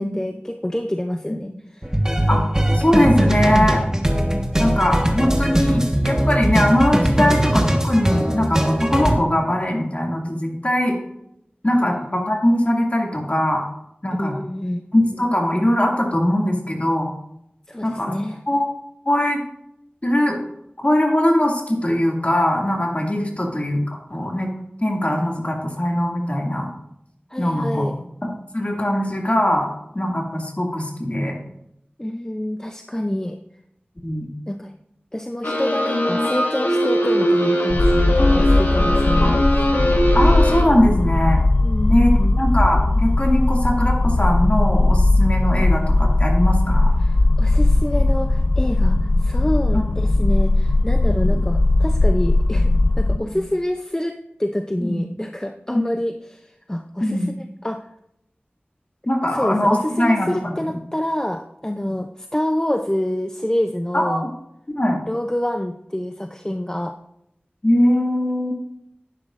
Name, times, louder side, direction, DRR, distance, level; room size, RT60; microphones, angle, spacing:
voice 1, 0.0-1.9 4.2-4.4 11.7-12.0 14.2-14.8 17.7-18.4 27.3-27.9 32.0-33.4 34.5-34.7 35.1-39.4 39.8-40.0 41.6-42.3 47.0-57.8 59.3-64.3 65.1-67.0, left 1 dB, 15° left, 5 dB, 0.5 m, -27 dB
sound 1, 1.8-9.1, right 1 dB, 15° right, 1.4 m, -20 dB
voice 2, 2.7-3.8 4.6-11.0 11.6-13.6 14.0-14.4 14.9-17.1 17.8-18.1 18.5-18.7 19.1-19.4 20.0-20.4 20.8-23.8 24.1-24.5 24.8-26.7 27.4-27.9 28.2-29.7 29.9-31.4 34.0-34.3 39.2-39.3 40.1-41.4 41.9-42.1 42.4-46.9 49.7-49.8 51.1-51.4 53.1-53.2 54.8-55.0 55.7-55.8 57.0-57.3 59.1-60.8 63.9-64.3 64.8-65.0 67.6-68.5, left 1 dB, 40° left, 0 dB, 2.3 m, -21 dB
sound 2, 35.4-40.6, equal, 80° left, 1.9 m, -20 dB
sound 3, 37.7-53.2, left 2 dB, 55° left, 0.6 m, -18 dB
11.5 x 9.7 x 2.5 m, 0.79 s
wide cardioid pair, 40°, 4 cm